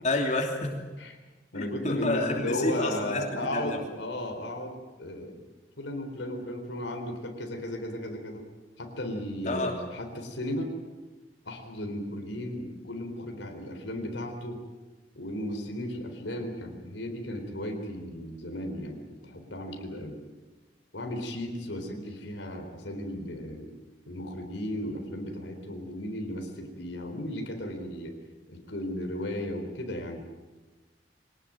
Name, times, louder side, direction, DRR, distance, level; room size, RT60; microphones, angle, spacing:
voice 1, 0.0-0.7 1.5-3.2 3.5-3.8 9.4-9.7, left 2 dB, 40° left, 1 dB, 3.1 m, -29 dB
voice 2, 1.5-5.4 5.8-8.4 8.8-10.7 11.5-14.6 15.1-20.2 20.9-23.7 24.1-28.2 28.5-30.2, left 1 dB, 90° left, 4 dB, 4.0 m, -35 dB
24.0 x 18.5 x 9.1 m, 1.2 s
head